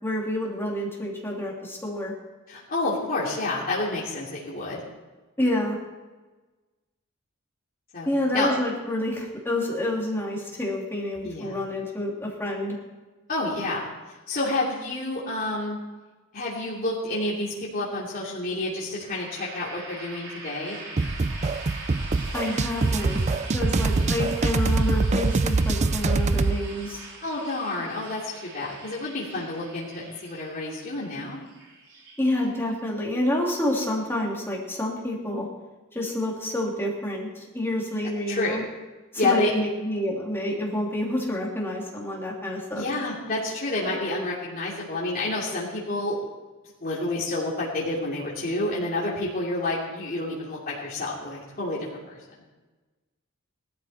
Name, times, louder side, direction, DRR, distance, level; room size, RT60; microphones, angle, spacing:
voice 1, 0.0-2.1 5.4-5.8 8.1-12.8 22.3-23.2 23.5-27.0 32.2-35.5 35.9-38.6 39.2-42.8, left 1 dB, 10° left, -3 dB, 3.0 m, -28 dB
voice 2, 2.5-4.8 7.9-8.1 8.3-8.5 11.2-11.6 13.3-13.9 14.3-15.8 16.3-20.8 23.7-23.9 27.2-31.4 38.3-38.6 39.2-39.5 42.7-46.2 46.8-52.2, left 2 dB, 45° left, -6 dB, 2.9 m, -29 dB
sound 1, 19.0-32.8, right 3 dB, 60° right, 4.9 m, -42 dB
sound 2, 21.0-26.6, right 3 dB, 30° right, 0.5 m, -24 dB
18.0 x 13.0 x 4.4 m, 1.2 s
head